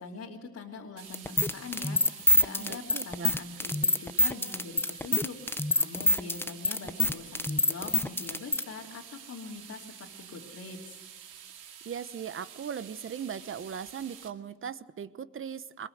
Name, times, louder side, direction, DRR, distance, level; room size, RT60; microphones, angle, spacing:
voice 1, 0.0-11.0, left 4 dB, 60° left, -4 dB, 3.0 m, -43 dB
sound 1, 1.0-14.3, right 8 dB, 85° right, 2.4 m, -48 dB
sound 2, 1.1-8.6, left 1 dB, 5° left, 0.6 m, -25 dB
voice 2, 2.6-3.3 11.8-15.9, right 7 dB, 45° right, 14 dB, 1.0 m, -38 dB
22.0 x 21.0 x 8.0 m, 1.2 s
cardioid pair, 90°, 30 cm